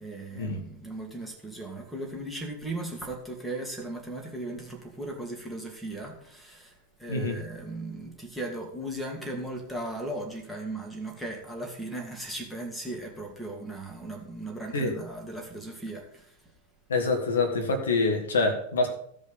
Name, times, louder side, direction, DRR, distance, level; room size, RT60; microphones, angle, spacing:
voice 1, 0.0-16.4, right 1 dB, ahead, 1 dB, 2.4 m, -37 dB
voice 2, 7.1-7.4 14.7-15.0 16.9-18.9, left 3 dB, 65° left, 4 dB, 1.7 m, -26 dB
15.5 x 5.3 x 5.6 m, 0.67 s
figure-of-eight pair, 90°, 0 cm